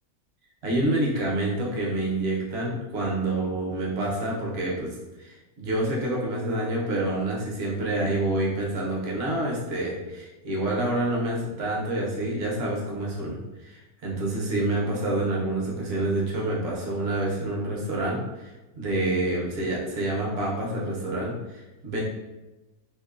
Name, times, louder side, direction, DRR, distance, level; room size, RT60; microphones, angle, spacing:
voice 1, 0.6-18.5 18.8-22.0, right 1 dB, 55° right, -3 dB, 0.8 m, -28 dB
2.8 x 2.0 x 2.3 m, 1.1 s
omnidirectional pair, 1.6 m